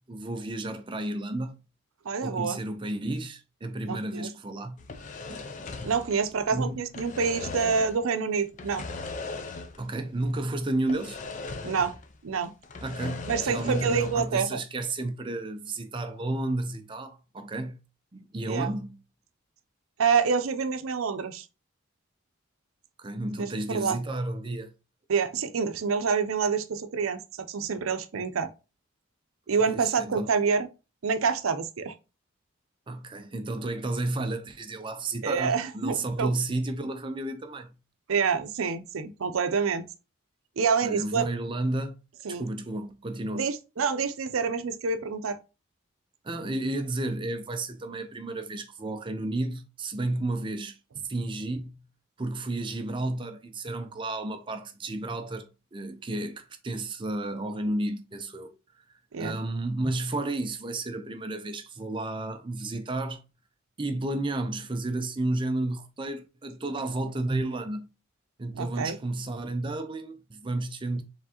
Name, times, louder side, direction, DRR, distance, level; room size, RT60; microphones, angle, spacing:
voice 1, 0.1-1.6 2.2-4.8 5.3-5.4 6.5-6.8 9.8-11.2 12.8-17.8 18.1-19.0 23.0-24.7 29.6-30.3 32.9-37.8 40.8-42.0 42.4-43.4 46.2-50.8 51.0-51.9 52.2-58.8 59.2-63.2 63.8-67.9 68.4-71.0, right 2 dB, 25° right, 0.5 m, -32 dB
voice 2, 2.0-2.6 3.8-4.3 5.8-8.8 11.6-11.9 12.2-12.5 13.3-14.6 18.5-18.7 20.0-21.5 23.4-24.0 25.1-28.5 29.5-30.7 31.0-31.9 35.2-36.3 38.1-39.8 40.6-41.3 42.2-42.4 43.3-45.4 59.1-59.4 68.6-69.0, right 5 dB, 80° right, 0.5 m, -27 dB
sound 1, 4.8-6.5 6.8-8.0 8.5-9.9 10.2-10.3 10.9-12.1 12.4-14.3, left 3 dB, 35° left, 0.5 m, -38 dB
4.5 x 3.4 x 2.8 m
head